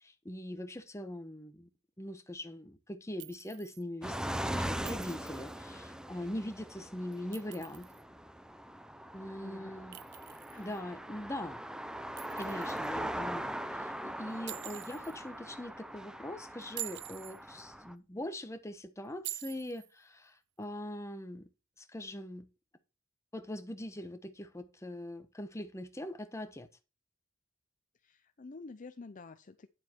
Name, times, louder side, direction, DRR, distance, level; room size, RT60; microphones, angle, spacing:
voice 1, 0.0-1.7 2.0-7.9 9.1-10.0 10.6-11.6 12.4-21.5 21.8-22.5 23.3-26.7, left 1 dB, 15° left, 1.1 m, -42 dB
Chink clink, 3.2-3.8 4.9-5.5 7.1-8.0 9.9-10.8 12.2-12.9 14.5-15.2 16.6-17.4 19.2-19.9, right 17 dB, 55° right, 0.4 m, -45 dB
sound 1, 4.0-17.9, right 1 dB, 5° right, 0.5 m, -41 dB
voice 2, 9.4-9.7 10.5-10.8 28.0-29.7, left 3 dB, 40° left, 0.6 m, -49 dB
9.6 x 7.3 x 4.4 m
head